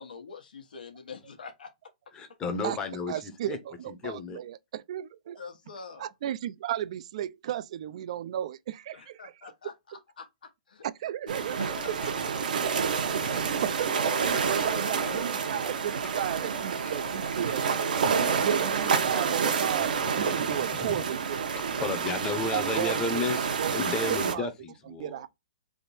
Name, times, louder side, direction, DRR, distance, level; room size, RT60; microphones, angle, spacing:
voice 1, 0.0-1.7 5.4-6.1 8.9-10.9 11.3-12.1 14.5-15.3, left 5 dB, 85° left, 1.1 m, -45 dB
voice 2, 2.1-3.6 4.0-4.4 20.8-21.0 21.8-23.5 23.7-25.2, left 3 dB, 15° left, 0.7 m, -32 dB
voice 3, 3.1-5.4 6.0-9.5 10.8-11.6 13.6-13.9 14.5-17.6 18.4-21.5 22.5-23.8 24.1-24.5 24.8-25.3, right 11 dB, 50° right, 0.4 m, -34 dB
sound 1, 11.3-24.3, right 6 dB, 75° right, 0.9 m, -28 dB
3.5 x 2.6 x 4.1 m
hypercardioid pair, 155°, 5 cm